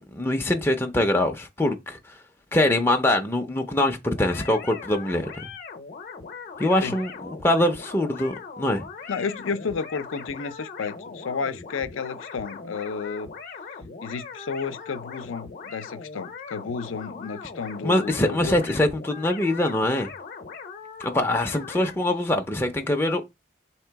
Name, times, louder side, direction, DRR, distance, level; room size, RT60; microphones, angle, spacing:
voice 1, 0.1-2.0 2.5-5.4 6.6-8.9 17.8-20.1 21.0-23.2, left 1 dB, 10° left, 0.4 m, -23 dB
sound 1, 4.1-22.0, left 5 dB, 45° left, 0.7 m, -40 dB
voice 2, 9.1-13.3 14.0-18.5 21.7-21.9, left 5 dB, 85° left, 0.5 m, -32 dB
3.8 x 2.9 x 4.5 m
head